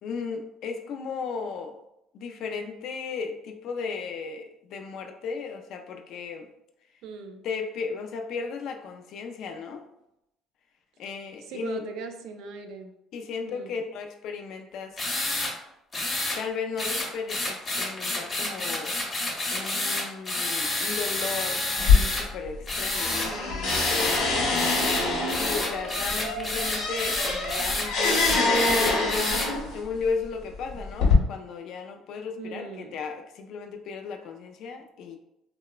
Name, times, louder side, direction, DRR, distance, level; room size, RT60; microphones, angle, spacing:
voice 1, 0.0-1.8 2.1-6.5 7.4-9.8 11.0-11.8 13.1-15.0 16.3-19.0 19.5-23.4 23.8-24.2 25.2-29.3 29.7-35.2, left 5 dB, 65° left, 5 dB, 0.3 m, -35 dB
voice 2, 7.0-7.4 11.4-12.9 13.4-13.7 23.1-23.9 24.6-25.1 32.4-33.0, right 5 dB, 75° right, 6 dB, 0.3 m, -40 dB
sound 1, 15.0-15.5 15.9-16.4 16.8-22.2 22.7-23.3 23.7-24.2 24.5-29.5, left 2 dB, 25° left, 0.7 m, -29 dB
sound 2, 21.8-22.7 22.9-29.8 30.5-31.1, left 3 dB, 85° left, 0.7 m, -25 dB
2.9 x 2.0 x 2.3 m, 0.83 s
cardioid pair, 110°, 0 cm